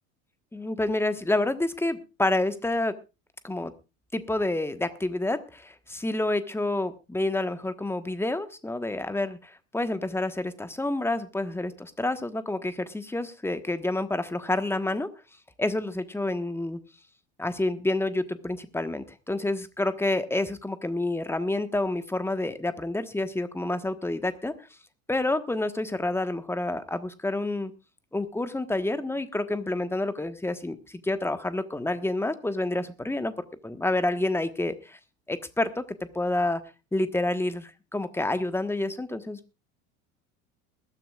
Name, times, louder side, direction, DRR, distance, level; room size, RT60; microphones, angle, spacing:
voice 1, 0.5-2.9 3.4-3.7 4.1-15.1 15.6-16.8 17.4-24.5 25.1-27.7 28.1-33.3 33.6-35.0 35.3-35.9 36.1-36.6 36.9-39.6, left 2 dB, 5° left, 11 dB, 1.3 m, -28 dB
21.0 x 13.5 x 2.4 m, 0.30 s
figure-of-eight pair, 75°, 41 cm